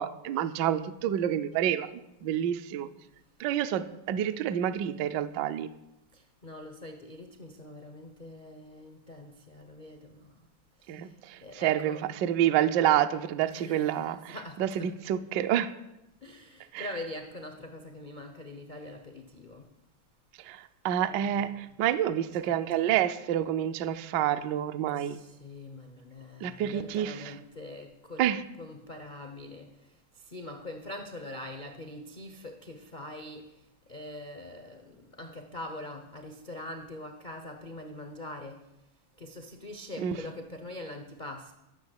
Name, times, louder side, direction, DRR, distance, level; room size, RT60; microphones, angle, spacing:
voice 1, 0.0-1.9 2.2-2.9 3.4-5.7 10.9-15.7 16.7-16.9 20.4-25.2 26.4-27.3 28.2-28.4 40.0-40.2, right 11 dB, 75° right, 11 dB, 1.0 m, -28 dB
voice 2, 6.1-10.3 10.8-11.1 11.4-12.0 13.5-15.0 16.2-19.7 21.0-21.5 22.2-23.0 25.0-28.2 28.6-33.5 33.9-38.7 39.2-41.5, left 1 dB, 85° left, 5 dB, 0.4 m, -43 dB
12.5 x 6.6 x 8.0 m, 0.92 s
omnidirectional pair, 2.4 m